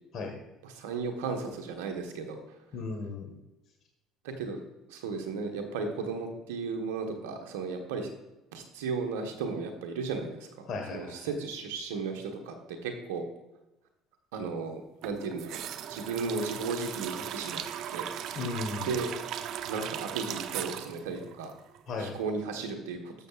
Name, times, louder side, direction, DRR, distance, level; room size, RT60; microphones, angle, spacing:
voice 1, 0.6-2.4 4.2-4.6 4.9-8.1 8.5-13.3 14.3-15.6 15.9-17.6 17.9-18.1 18.8-19.1 19.6-21.5 22.0-23.1, right 4 dB, 90° right, 4 dB, 1.2 m, -35 dB
voice 2, 2.7-3.3 10.7-11.3 18.3-19.0 21.9-22.2, left 3 dB, 60° left, 3 dB, 1.4 m, -35 dB
sound 1, 15.0-22.0 22.3-22.4, right 10 dB, 65° right, 0.6 m, -38 dB
12.5 x 6.7 x 2.5 m, 0.98 s
supercardioid pair, 75°, 0 cm